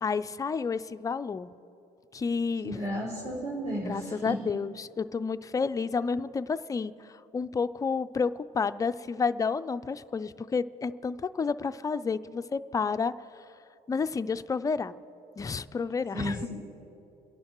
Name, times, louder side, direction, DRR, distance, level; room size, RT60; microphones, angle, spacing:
voice 1, 0.0-1.5 2.1-2.8 3.8-13.1 13.9-15.0 15.4-16.6, left 5 dB, 20° left, 12 dB, 0.3 m, -30 dB
voice 2, 2.6-4.4 16.1-16.6, equal, 45° right, -9 dB, 4.0 m, -33 dB
27.5 x 11.0 x 3.0 m, 2.8 s
cardioid pair, 110°, 17 cm